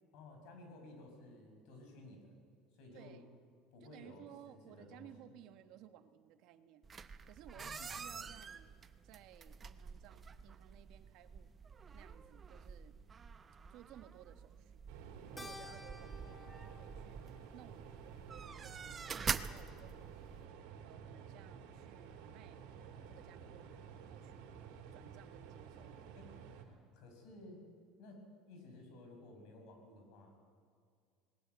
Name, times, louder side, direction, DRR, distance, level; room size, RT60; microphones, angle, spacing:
voice 1, 0.1-2.3 2.7-3.2 3.7-5.1 7.5-8.3 26.1-26.3 26.9-27.6 28.0-30.5, left 2 dB, 65° left, 4 dB, 6.2 m, -55 dB
voice 2, 2.9-3.3 3.8-6.8 7.2-8.7 9.0-11.5 11.9-13.0 13.7-14.8 15.3-17.2 17.5-20.4 20.8-22.6 23.1-24.5 24.9-26.1, right 11 dB, 60° right, 9 dB, 1.3 m, -59 dB
sound 1, 6.8-20.5, right 6 dB, 25° right, 0.7 m, -47 dB
sound 2, 14.9-26.6, right 7 dB, 80° right, 3.1 m, -52 dB
Keyboard (musical), 15.4-20.0, left 3 dB, 10° left, 1.5 m, -56 dB
19.5 x 19.0 x 8.1 m, 2.1 s
cardioid pair, 140°, 0 cm